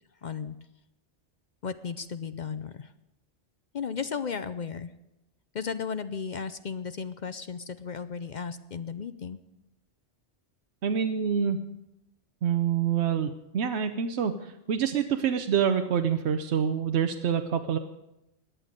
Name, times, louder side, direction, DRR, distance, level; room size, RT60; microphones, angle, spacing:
voice 1, 0.2-0.6 1.6-2.9 3.7-4.9 5.5-9.4, left 6 dB, 50° left, 12 dB, 0.6 m, -35 dB
voice 2, 10.8-11.6 12.4-17.8, right 8 dB, 70° right, 7 dB, 1.0 m, -26 dB
18.0 x 11.0 x 5.2 m, 0.92 s
omnidirectional pair, 1.2 m